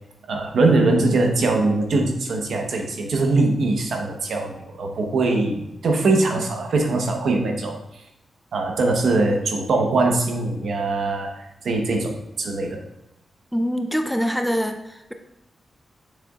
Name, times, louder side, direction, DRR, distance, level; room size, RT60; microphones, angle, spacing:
voice 1, 0.3-8.0 8.5-12.8, right 2 dB, 75° right, 2 dB, 1.1 m, -22 dB
voice 2, 13.5-15.1, equal, ahead, 5 dB, 0.5 m, -24 dB
6.8 x 6.7 x 2.4 m, 0.88 s
wide cardioid pair, 120°, 0 cm